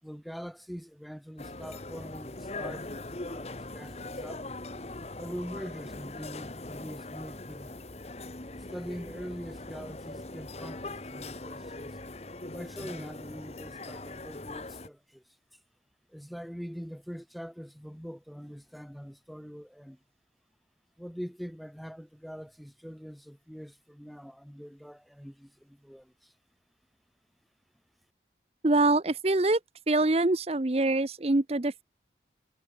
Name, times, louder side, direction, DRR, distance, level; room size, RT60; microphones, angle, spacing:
voice 1, 0.0-4.5 5.2-7.9 8.5-12.0 12.5-15.2 15.5-15.6 16.1-20.0 21.0-26.3, equal, ahead, 4.9 m, -43 dB
sound 1, 1.4-14.9, left 2 dB, 35° left, 1.4 m, -41 dB
voice 2, 28.6-29.6 29.9-31.8, right 2 dB, 35° right, 0.8 m, -24 dB
head